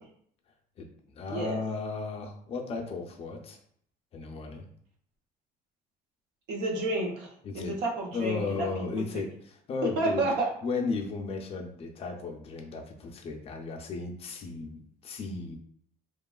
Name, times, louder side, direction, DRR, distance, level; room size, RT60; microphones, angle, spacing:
voice 1, 0.8-3.6 4.1-4.7 7.4-7.8 8.1-10.3 10.6-15.6, left 4 dB, 35° left, 3 dB, 0.4 m, -35 dB
voice 2, 1.3-1.6 6.5-7.3 7.5-8.7 9.0-9.1 10.0-10.5, right 2 dB, 85° right, 0 dB, 0.7 m, -30 dB
2.9 x 2.3 x 2.3 m, 0.64 s
cardioid pair, 140°, 17 cm